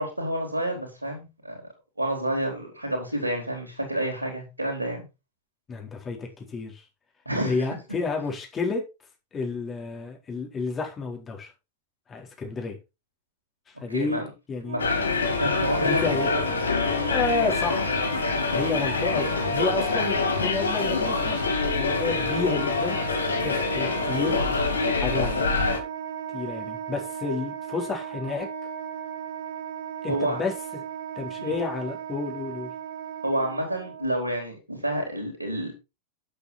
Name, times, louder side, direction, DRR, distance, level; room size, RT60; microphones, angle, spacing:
voice 1, 0.0-1.6 2.0-5.0 7.3-7.6 13.9-14.3 14.7-16.3 30.1-30.4 33.2-35.7, right 1 dB, 85° right, 3.8 m, -29 dB
voice 2, 5.7-6.8 7.4-8.8 9.3-11.5 12.1-12.8 13.7-14.2 14.5-14.8 15.8-16.7 17.1-21.4 21.8-24.6 24.9-25.6 26.3-28.5 30.0-30.5 31.2-32.7, left 4 dB, 20° left, 4.0 m, -31 dB
Wind instrument woodwind instrument, 14.6-34.1, right 7 dB, 65° right, 2.4 m, -36 dB
sound 1, 14.8-25.8, left 4 dB, 70° left, 2.3 m, -26 dB
9.5 x 8.2 x 4.4 m
figure-of-eight pair, 90°, 0 cm